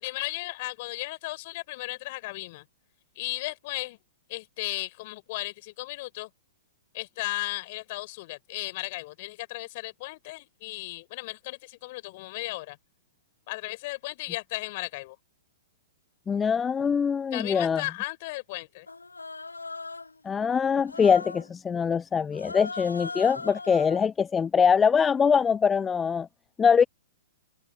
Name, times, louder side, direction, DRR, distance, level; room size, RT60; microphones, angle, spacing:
voice 1, 0.0-2.6 3.1-4.0 4.3-6.3 6.9-12.8 13.5-15.2 17.3-18.9, left 21 dB, 45° left, 5.1 m, -35 dB
voice 2, 16.3-17.8 20.2-26.3 26.6-26.8, left 6 dB, 15° left, 0.5 m, -23 dB
Human voice, 18.9-20.2 20.8-21.5 22.3-24.1, left 3 dB, 85° left, 1.4 m, -39 dB
open air
figure-of-eight pair, 110°, 0 cm